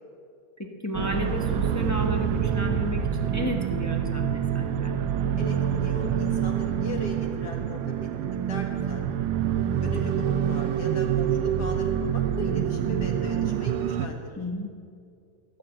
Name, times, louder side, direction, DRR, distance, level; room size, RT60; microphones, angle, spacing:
voice 1, 0.6-5.0 10.3-10.4 14.4-14.7, left 1 dB, 10° left, 1 dB, 0.9 m, -33 dB
sound 1, 0.9-14.1, right 9 dB, 80° right, 1.4 m, -26 dB
voice 2, 5.4-9.3 9.8-14.4, left 1 dB, 55° left, 2 dB, 2.2 m, -38 dB
16.0 x 6.8 x 9.0 m, 2.3 s
omnidirectional pair, 2.1 m